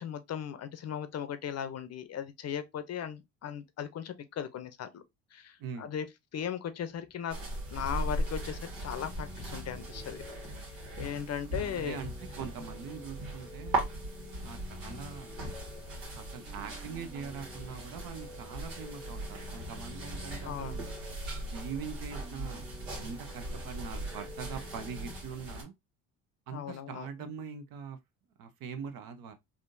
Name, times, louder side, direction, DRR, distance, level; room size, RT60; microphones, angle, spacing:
voice 1, 0.0-5.0 5.3-6.1 6.3-7.4 7.7-10.2 11.0-12.0 20.4-20.8 26.5-27.1, left 9 dB, 40° left, 0.6 m, -37 dB
voice 2, 5.6-5.9 11.7-13.9 14.4-15.3 16.1-21.0 21.5-22.6 23.0-25.7 26.5-28.0 28.4-29.3, right 6 dB, 60° right, 0.8 m, -42 dB
sound 1, 6.9-25.2, left 3 dB, 10° left, 0.8 m, -50 dB
sound 2, 7.3-25.6, right 2 dB, 90° right, 1.6 m, -39 dB
3.5 x 2.6 x 2.5 m
supercardioid pair, 75°, 39 cm